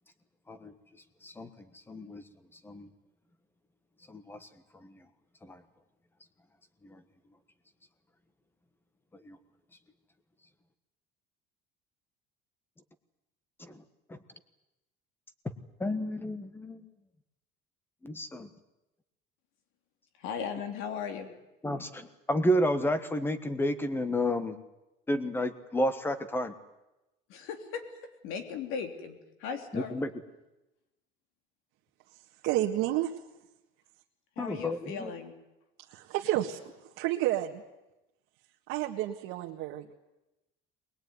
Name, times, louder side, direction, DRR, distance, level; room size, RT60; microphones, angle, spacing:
voice 1, 1.9-2.2 2.6-2.9 4.1-4.5 4.8-4.9 5.4-5.6 6.8-7.0 9.2-9.4 13.6-13.8 14.1-14.2 15.8-16.8 18.0-18.5 21.6-24.6 25.1-26.5 29.7-30.1 34.4-35.1, equal, 10° left, 12 dB, 1.4 m, -31 dB
voice 2, 20.1-21.3 27.3-27.8 28.2-30.1 34.4-35.3, left 6 dB, 75° left, 7 dB, 3.1 m, -37 dB
voice 3, 32.4-33.1 35.9-37.6 38.7-39.9, right 14 dB, 75° right, -3 dB, 1.8 m, -30 dB
22.0 x 20.5 x 9.5 m, 0.97 s
cardioid pair, 165°, 21 cm